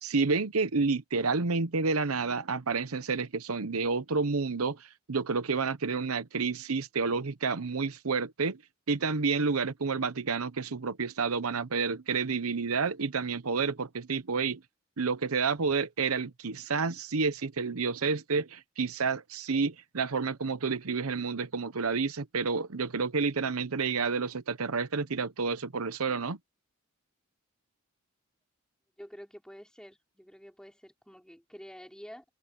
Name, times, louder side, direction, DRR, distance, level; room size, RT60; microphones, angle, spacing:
voice 1, 0.0-8.6 8.9-14.6 15.0-26.4, right 4 dB, 90° right, 0.9 m, -30 dB
voice 2, 29.0-32.2, equal, 5° left, 5.6 m, -49 dB
head